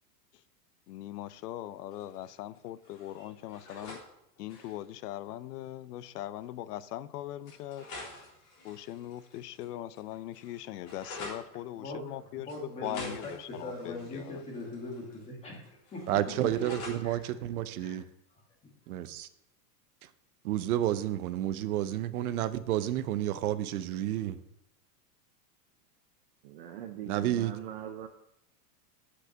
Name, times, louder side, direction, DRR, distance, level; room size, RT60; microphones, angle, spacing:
voice 1, 0.9-4.0 4.4-7.9 8.6-14.4, left 13 dB, 75° left, 16 dB, 0.7 m, -40 dB
sound 1, 1.9-2.6 2.8-4.0 4.4-4.8 5.9-6.0 6.4-6.5 7.5-9.7 10.0-11.4 12.5-15.3 15.5-17.0, left 2 dB, 35° left, 3.6 m, -47 dB
voice 2, 12.5-16.0 16.4-16.7 17.0-17.3 17.8-18.0 18.9-19.0, left 2 dB, 15° left, 0 dB, 1.6 m, -41 dB
voice 3, 16.1-18.0 18.9-19.3 20.4-24.4 27.1-27.5, right 12 dB, 65° right, 13 dB, 0.8 m, -30 dB
voice 4, 26.4-28.1, right 9 dB, 40° right, 7 dB, 0.5 m, -41 dB
8.1 x 6.2 x 7.5 m, 0.79 s
supercardioid pair, 175°, 47 cm